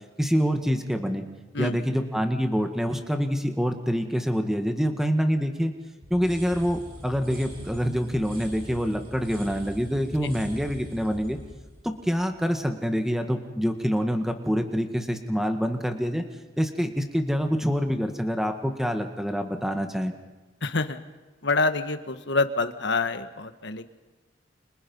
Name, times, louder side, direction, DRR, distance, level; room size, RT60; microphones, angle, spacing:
voice 1, 0.2-1.3 1.6-5.7 6.1-11.4 12.0-16.2 16.6-20.1, equal, ahead, 5 dB, 1.8 m, -26 dB
sound 1, 6.0-12.9, equal, 50° right, 7.9 m, -42 dB
voice 2, 20.6-21.0 21.4-23.9, left 3 dB, 70° left, 10 dB, 1.5 m, -26 dB
30.0 x 27.5 x 5.6 m, 1.2 s
head